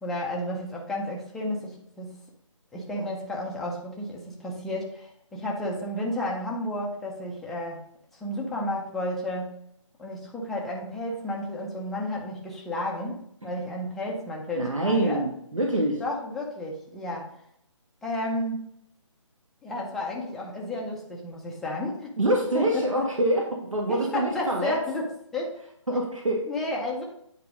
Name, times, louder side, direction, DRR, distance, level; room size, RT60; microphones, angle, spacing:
voice 1, 0.0-2.1 2.7-7.8 8.1-9.6 10.0-15.2 16.0-17.4 18.0-18.7 19.6-22.1 22.5-23.1 23.9-25.6 26.5-27.0, left 1 dB, ahead, -2 dB, 0.5 m, -32 dB
voice 2, 14.6-16.0 22.2-24.8 25.9-26.5, right 1 dB, 80° right, 0 dB, 1.8 m, -25 dB
9.2 x 4.0 x 5.1 m, 0.72 s
figure-of-eight pair, 150°, 17 cm